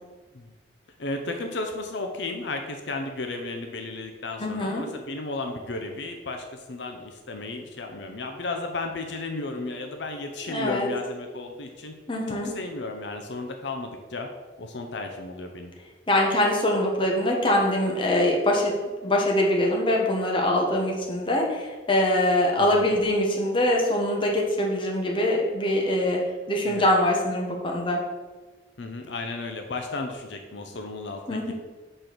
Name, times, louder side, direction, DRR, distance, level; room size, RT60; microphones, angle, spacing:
voice 1, 1.0-11.9 12.3-14.3 14.6-15.7 22.6-22.9 26.6-26.9 28.8-31.5, left 3 dB, 75° left, 4 dB, 0.6 m, -34 dB
voice 2, 4.4-4.9 10.5-10.9 12.1-12.5 16.1-28.0 31.3-31.5, left 1 dB, 30° left, -1 dB, 1.0 m, -23 dB
5.0 x 4.4 x 6.0 m, 1.3 s
head